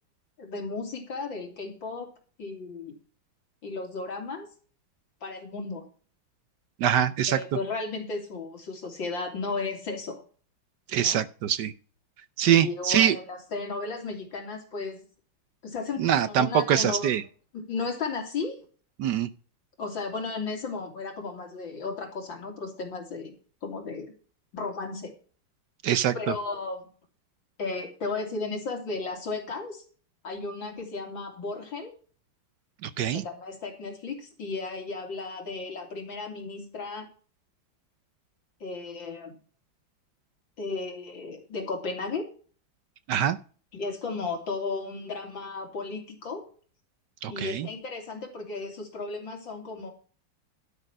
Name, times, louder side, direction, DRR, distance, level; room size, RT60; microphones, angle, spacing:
voice 1, 0.4-2.1 2.4-3.0 3.6-4.5 5.2-5.9 7.3-10.2 11.0-11.2 12.4-15.0 15.6-17.1 17.5-18.6 19.8-23.3 23.6-24.1 24.5-25.1 26.1-26.9 27.6-29.8 30.2-31.9 33.1-37.1 38.6-39.3 40.6-42.3 43.7-46.5 47.3-49.9, left 4 dB, 70° left, 2 dB, 3.9 m, -34 dB
voice 2, 6.8-7.4 10.9-11.7 12.4-13.2 16.0-17.2 19.0-19.3 25.8-26.3 32.8-33.2 43.1-43.4 47.2-47.7, right 10 dB, 70° right, 15 dB, 1.2 m, -24 dB
12.0 x 6.5 x 6.1 m, 0.39 s
omnidirectional pair, 2.1 m